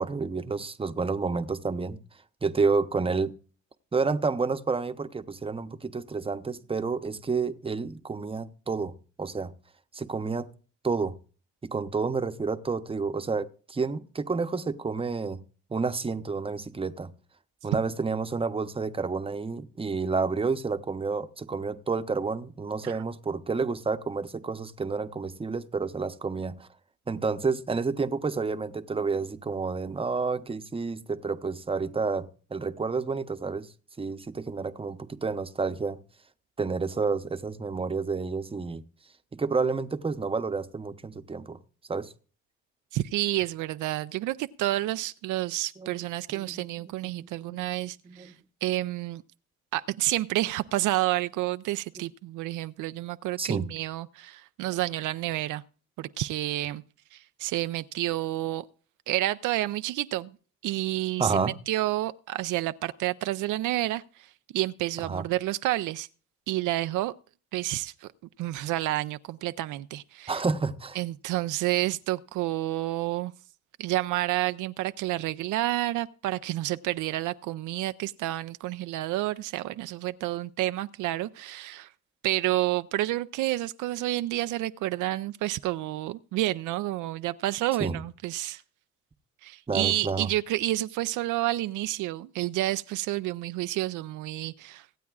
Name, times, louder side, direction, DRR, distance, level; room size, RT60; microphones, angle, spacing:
voice 1, 0.0-2.0 2.4-3.3 3.9-9.5 9.9-10.5 10.8-11.2 11.7-15.4 15.7-17.1 17.6-26.7 27.1-33.7 34.0-36.0 36.6-38.8 39.4-41.6 41.9-42.1 45.8-45.9 46.3-46.4 46.8-47.6 48.0-48.4 53.4-53.7 61.2-61.6 65.1-65.3 70.3-71.0 87.8-88.0 89.7-90.3, right 4 dB, 20° right, 0.8 m, -30 dB
voice 2, 42.9-48.3 48.6-49.2 49.7-55.6 56.0-56.8 57.1-58.7 59.1-60.4 60.6-66.1 66.5-67.1 67.5-68.1 68.4-70.4 71.0-73.3 73.8-81.9 82.2-88.6 89.4-94.9, right 16 dB, 85° right, 0.5 m, -29 dB
25.0 x 8.5 x 2.4 m
cardioid pair, 90°, 30 cm